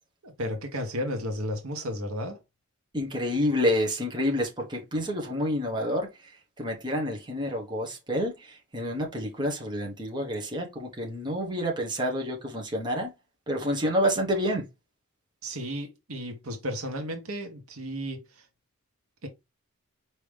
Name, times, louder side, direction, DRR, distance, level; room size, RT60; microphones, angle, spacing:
voice 1, 0.2-2.4 15.4-18.4 19.2-19.3, equal, 70° right, 1.2 m, -33 dB
voice 2, 2.9-13.1 13.5-14.7, equal, 20° right, 1.1 m, -29 dB
4.9 x 3.0 x 3.4 m
head